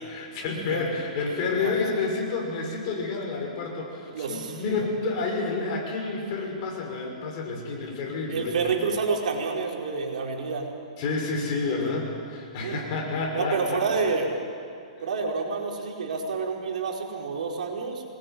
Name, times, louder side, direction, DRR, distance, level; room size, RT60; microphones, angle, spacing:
voice 1, 0.1-8.7 11.0-13.8, left 3 dB, 35° left, 0 dB, 6.4 m, -29 dB
voice 2, 4.1-4.9 8.3-10.7 11.8-11.9 12.6-12.8 13.3-14.4 15.0-18.0, right 4 dB, 70° right, 1 dB, 4.9 m, -29 dB
26.0 x 20.5 x 9.5 m, 2.5 s
hypercardioid pair, 165°, 4 cm